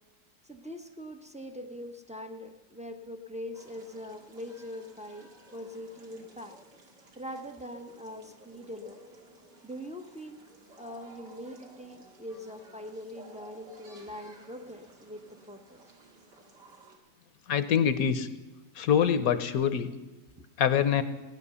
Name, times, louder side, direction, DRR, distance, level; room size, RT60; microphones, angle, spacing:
voice 1, 0.4-6.6 7.2-9.0 9.6-10.4 10.8-15.8 20.3-20.4, left 1 dB, 10° right, 5 dB, 0.3 m, -42 dB
sound 1, 3.5-17.0, right 2 dB, 85° right, 2.6 m, -55 dB
voice 2, 17.5-18.3 18.8-19.9 20.6-21.0, left 8 dB, 65° left, 12 dB, 1.1 m, -25 dB
17.0 x 10.5 x 6.9 m, 1.1 s
omnidirectional pair, 1.8 m